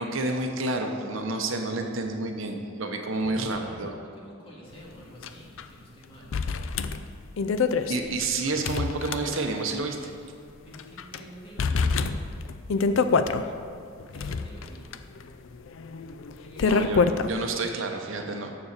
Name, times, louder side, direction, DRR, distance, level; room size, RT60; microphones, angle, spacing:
voice 1, 0.0-3.9 7.9-10.1 16.6-18.5, right 2 dB, 65° right, 4 dB, 0.8 m, -30 dB
voice 2, 3.1-6.3 10.6-12.1 14.1-14.9 16.4-17.2 17.5-18.4, equal, 25° left, -5 dB, 2.0 m, -48 dB
sound 1, 5.2-5.3 5.6-5.7 6.3-9.7 10.0-10.1 10.7-11.2 11.6-13.4 14.0-17.3, left 4 dB, 65° left, 0.4 m, -26 dB
7.0 x 7.0 x 6.6 m, 2.4 s
head